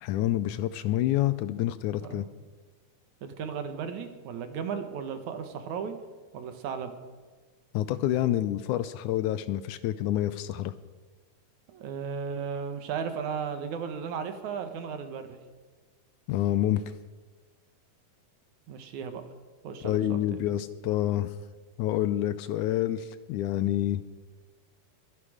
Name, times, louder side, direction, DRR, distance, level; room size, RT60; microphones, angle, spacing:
voice 1, 0.0-2.2 7.7-10.7 16.3-16.8 19.8-21.3 21.8-24.0, left 13 dB, 80° left, 14 dB, 1.9 m, -28 dB
voice 2, 3.2-5.9 6.3-6.9 11.7-15.4 18.7-19.2 19.6-20.4, right 6 dB, 65° right, 8 dB, 2.6 m, -35 dB
22.5 x 11.0 x 5.0 m, 1.4 s
omnidirectional pair, 3.8 m